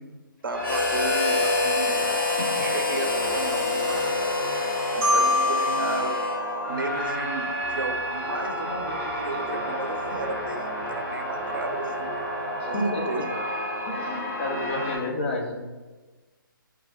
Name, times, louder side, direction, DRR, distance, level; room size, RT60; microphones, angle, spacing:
voice 1, 0.4-1.9 2.4-4.1 4.9-6.2 6.7-12.1 12.6-13.5, right 3 dB, 70° right, 4 dB, 0.5 m, -34 dB
sound 1, 0.5-15.0, equal, 15° left, 1.4 m, -31 dB
Harmonica, 0.6-6.6, left 3 dB, 75° left, 1.0 m, -27 dB
Marimba xylophone, 5.0-7.8, left 2 dB, 20° right, 0.8 m, -27 dB
voice 2, 12.6-13.0 13.9-15.5, left 1 dB, 35° left, 0 dB, 0.5 m, -30 dB
2.9 x 2.3 x 3.1 m, 1.2 s
figure-of-eight pair, 140°, 12 cm